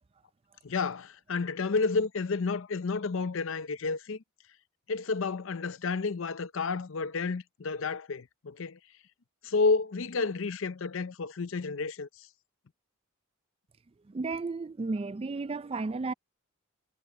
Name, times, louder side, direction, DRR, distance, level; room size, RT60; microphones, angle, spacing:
voice 1, 0.6-4.2 4.9-8.8 9.4-12.1, left 4 dB, 65° left, 0.6 m, -30 dB
voice 2, 14.1-16.1, right 3 dB, 25° right, 0.3 m, -33 dB
head